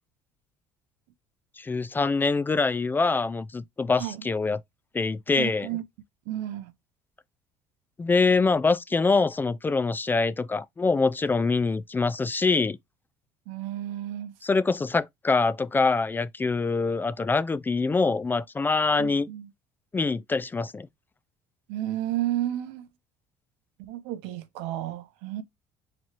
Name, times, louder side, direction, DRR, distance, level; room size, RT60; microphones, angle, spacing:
voice 1, 1.6-4.6 4.9-5.7 8.0-12.8 14.4-19.3 19.9-20.9, left 4 dB, 20° left, 0.3 m, -24 dB
voice 2, 5.4-5.8 6.3-6.7 13.5-14.3 19.0-19.5 21.7-22.9 23.8-25.4, right 13 dB, 85° right, 0.7 m, -32 dB
4.4 x 3.0 x 2.9 m
supercardioid pair, 90°, 11 cm